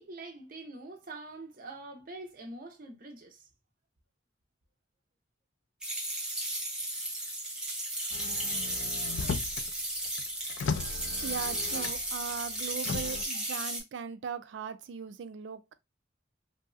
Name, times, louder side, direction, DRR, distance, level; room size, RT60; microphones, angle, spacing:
voice 1, 0.0-3.5 11.7-12.1 13.1-13.6, right 2 dB, 50° right, 0.8 m, -45 dB
sound 1, 5.8-13.8, right 1 dB, 5° right, 0.9 m, -34 dB
Motor vehicle (road), 8.1-9.7 10.0-12.2 12.8-13.2, left 5 dB, 75° left, 0.4 m, -36 dB
voice 2, 11.2-15.7, right 7 dB, 75° right, 0.4 m, -39 dB
3.0 x 2.7 x 2.3 m
head